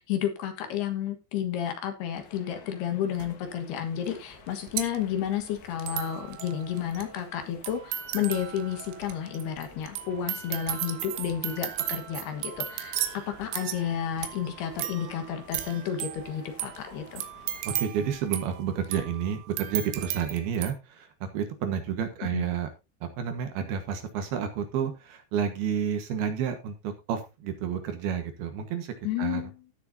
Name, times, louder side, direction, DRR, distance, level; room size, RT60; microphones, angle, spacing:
voice 1, 0.0-17.3 22.3-22.5 29.0-29.5, left 9 dB, 65° left, 6 dB, 3.3 m, -31 dB
sound 1, 2.2-17.9, left 7 dB, 90° left, 4.1 m, -52 dB
sound 2, 3.2-3.3 4.1-4.2 4.3-20.7, right 12 dB, 85° right, 3.6 m, -36 dB
voice 2, 17.8-21.1 21.3-22.7 23.0-29.4, right 8 dB, 65° right, 7 dB, 3.0 m, -30 dB
17.0 x 6.8 x 2.7 m, 0.26 s
omnidirectional pair, 5.4 m